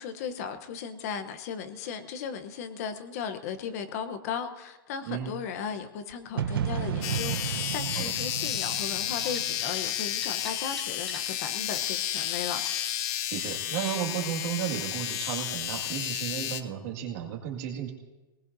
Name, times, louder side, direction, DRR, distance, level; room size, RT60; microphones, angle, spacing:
voice 1, 0.0-12.6, left 7 dB, 45° left, 8 dB, 0.9 m, -36 dB
voice 2, 5.0-5.4 8.0-8.1 13.3-17.9, right 10 dB, 45° right, 1 dB, 2.1 m, -33 dB
sound 1, 6.4-10.2, right 8 dB, 85° right, 1.0 m, -33 dB
sound 2, 7.0-16.6, left 12 dB, 30° left, 0.6 m, -32 dB
sound 3, 9.3-9.5 10.2-11.3, right 1 dB, 5° left, 2.2 m, -44 dB
24.5 x 19.0 x 2.7 m, 1.1 s
supercardioid pair, 160°, 12 cm